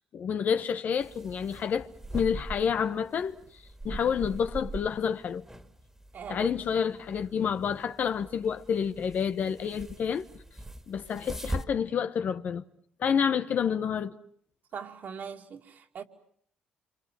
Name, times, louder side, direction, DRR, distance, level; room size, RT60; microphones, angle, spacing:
voice 1, 0.1-3.3 3.8-5.4 6.3-10.2 10.9-12.6 13.0-14.2, left 7 dB, 55° left, 1.2 m, -29 dB
sound 1, 1.0-11.6, right 1 dB, 10° right, 2.3 m, -42 dB
voice 2, 6.1-6.5 14.7-16.0, right 7 dB, 60° right, 2.7 m, -40 dB
27.5 x 25.5 x 7.6 m
supercardioid pair, 70°, 3 cm